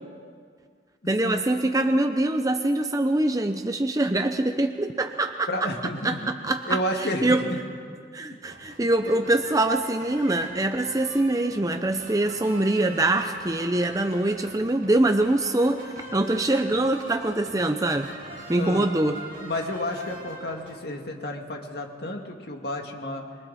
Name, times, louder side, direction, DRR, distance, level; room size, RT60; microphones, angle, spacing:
voice 1, 1.1-5.5 6.0-6.2 6.4-7.4 8.1-15.8 16.1-18.1 18.5-19.2, right 2 dB, 20° right, 6 dB, 0.7 m, -24 dB
voice 2, 5.5-6.3 6.7-7.6 8.8-9.2 18.1-18.9 19.4-23.2, left 1 dB, 55° left, 2 dB, 2.3 m, -31 dB
sound 1, 8.5-20.8, right 1 dB, 45° right, 4.7 m, -43 dB
27.0 x 23.0 x 4.3 m, 2.1 s
head